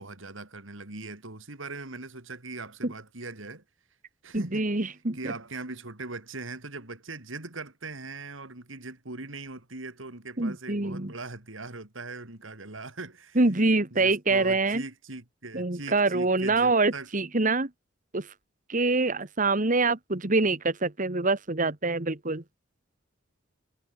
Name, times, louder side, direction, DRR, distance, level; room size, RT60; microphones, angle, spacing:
voice 1, 0.0-3.6 4.2-13.4 13.9-17.1, right 3 dB, 85° right, 3.2 m, -40 dB
voice 2, 4.3-5.3 10.4-11.1 13.4-14.8 15.5-17.7 18.1-18.3 18.7-22.4, right 3 dB, 45° right, 1.7 m, -25 dB
head